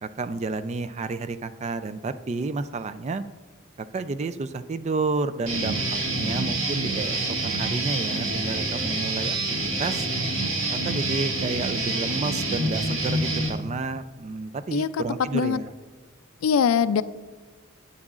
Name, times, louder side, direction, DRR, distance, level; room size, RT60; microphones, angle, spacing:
voice 1, 0.0-3.2 3.8-9.4 9.8-10.1 10.8-15.7, right 3 dB, 35° right, 11 dB, 0.3 m, -31 dB
Guitar, 5.5-13.5, right 2 dB, 80° right, 1.8 m, -27 dB
voice 2, 16.4-17.0, left 7 dB, 80° left, 15 dB, 0.3 m, -21 dB
11.0 x 8.7 x 2.4 m, 1.3 s
head